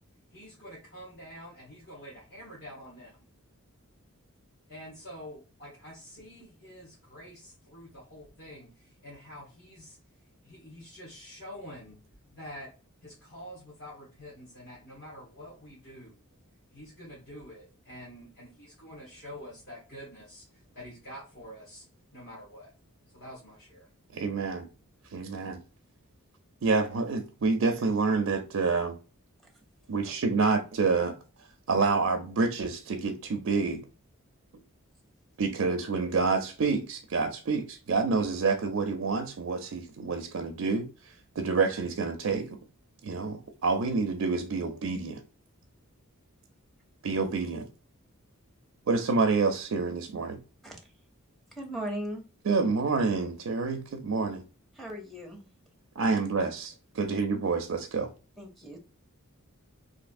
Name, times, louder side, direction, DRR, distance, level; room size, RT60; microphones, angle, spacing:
voice 1, 0.3-3.2 4.7-10.0 10.4-12.0 12.3-12.7 13.0-16.2 16.7-22.7 23.1-23.9, equal, 55° left, 1.5 m, -47 dB
voice 2, 24.1-24.7 25.1-25.6 26.6-29.0 29.9-31.2 31.7-33.8 35.4-42.5 43.0-45.2 47.0-47.6 48.9-50.4 52.5-54.4 56.0-58.1, right 4 dB, 70° right, 0.5 m, -28 dB
voice 3, 51.5-52.2 54.7-55.5 58.4-58.8, right 1 dB, ahead, 0.7 m, -38 dB
3.3 x 2.7 x 2.5 m
head